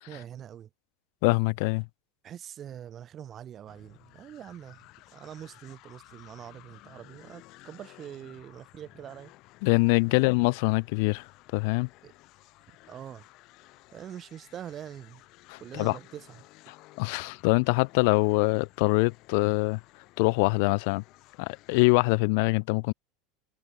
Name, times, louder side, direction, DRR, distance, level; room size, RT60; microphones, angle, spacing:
voice 1, 0.1-0.7 2.2-9.3 10.1-10.3 12.0-12.1 12.9-13.2 13.9-15.2 15.6-16.4, right 10 dB, 25° right, 1.3 m, -44 dB
voice 2, 1.2-1.9 9.6-11.3 11.5-11.9 15.5-16.0 17.0-19.8 20.2-21.0 21.4-22.9, left 31 dB, 60° left, 0.3 m, -24 dB
sound 1, 3.7-22.3, left 20 dB, 45° left, 6.2 m, -55 dB
supercardioid pair, 160°, 0 cm